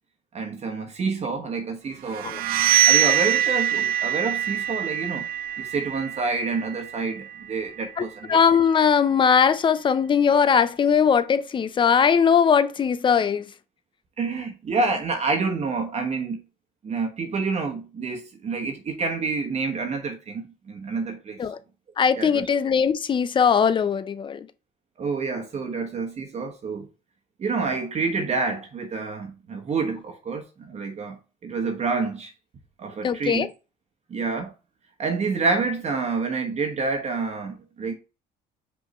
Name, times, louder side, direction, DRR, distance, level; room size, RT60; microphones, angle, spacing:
voice 1, 0.3-2.4 2.8-5.3 5.6-8.4 14.2-16.4 16.8-21.4 22.2-22.5 25.0-26.9 27.4-31.2 31.4-32.3 32.8-33.5 34.1-34.5 35.0-37.9, right 4 dB, 40° right, 1.2 m, -28 dB
sound 1, 2.1-7.8, right 10 dB, 65° right, 0.5 m, -24 dB
voice 2, 8.0-13.5 21.4-21.6 22.0-24.5 33.0-33.5, left 7 dB, 30° left, 0.5 m, -20 dB
5.2 x 3.6 x 5.3 m
cardioid pair, 110°, 17 cm